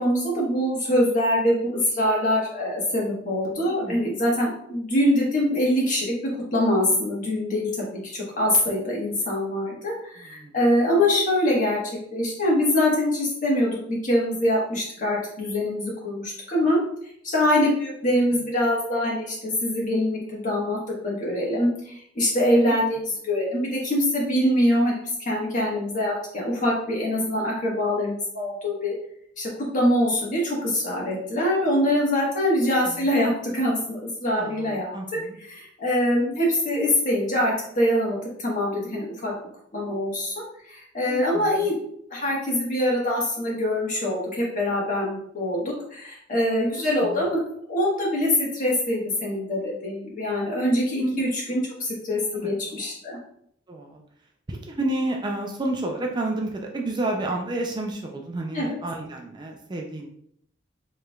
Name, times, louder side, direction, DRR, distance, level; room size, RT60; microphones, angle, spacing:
voice 1, 0.0-7.7 8.0-11.8 12.1-16.8 17.2-20.8 21.0-28.9 29.4-34.9 35.5-39.3 39.7-41.7 42.1-47.4 47.7-53.2 58.5-58.7, left 1 dB, 45° left, -3 dB, 1.4 m, -24 dB
voice 2, 3.7-4.2 10.2-10.5 22.6-22.7 32.8-33.1 34.3-35.3 41.1-41.7 46.8-47.3 51.0-51.2 52.3-52.5 52.8-52.9 53.7-54.0 54.5-60.1, right 2 dB, 25° right, 1 dB, 0.4 m, -31 dB
4.7 x 3.2 x 2.3 m, 0.68 s
head